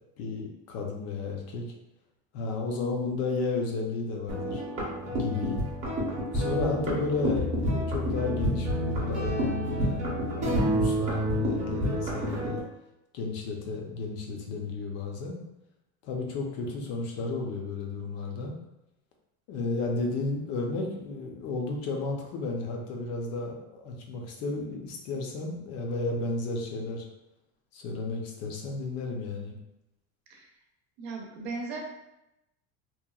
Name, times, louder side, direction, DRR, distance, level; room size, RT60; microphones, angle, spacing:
voice 1, 0.2-1.6 2.3-4.6 5.1-5.6 6.3-10.1 10.4-12.6 13.1-15.4 16.0-18.5 19.5-27.0 27.7-29.6, left 3 dB, 50° left, 1 dB, 0.6 m, -33 dB
sound 1, 4.3-12.6, equal, 25° right, 0.6 m, -29 dB
voice 2, 31.0-31.8, right 3 dB, 85° right, 1 dB, 0.7 m, -37 dB
2.9 x 2.1 x 2.3 m, 0.90 s
cardioid pair, 160°, 32 cm